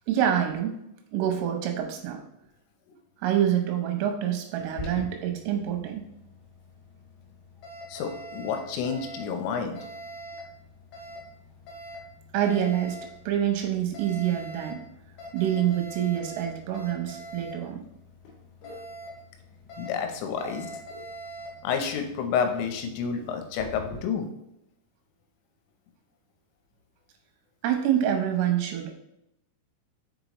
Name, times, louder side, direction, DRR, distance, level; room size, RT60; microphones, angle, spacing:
voice 1, 0.1-0.8 1.1-2.2 3.2-6.0 12.3-13.0 13.3-14.8 15.3-17.8 20.4-20.5 27.6-28.9, right 10 dB, 85° right, 4 dB, 3.5 m, -26 dB
Alarm, 4.6-24.0, equal, 60° left, 3.1 m, -43 dB
voice 2, 7.9-9.8 19.8-20.7 21.6-24.3, left 6 dB, 85° left, 5 dB, 3.4 m, -29 dB
6.9 x 5.3 x 3.0 m, 0.81 s
omnidirectional pair, 5.8 m